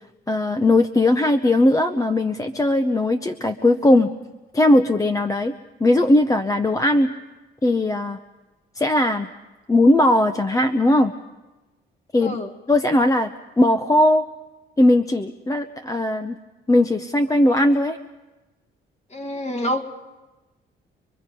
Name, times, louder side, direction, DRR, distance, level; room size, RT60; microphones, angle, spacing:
voice 1, 0.3-4.1 4.5-5.5 5.8-7.1 7.6-8.2 8.7-9.3 9.7-11.1 12.1-12.4 12.7-13.3 13.6-14.2 14.8-16.4 16.7-18.0, left 1 dB, 15° left, 8 dB, 0.8 m, -18 dB
voice 2, 12.2-12.5 19.1-19.8, left 1 dB, 35° left, 6 dB, 2.1 m, -27 dB
26.0 x 22.5 x 5.3 m, 1.1 s
cardioid pair, 90°, 20 cm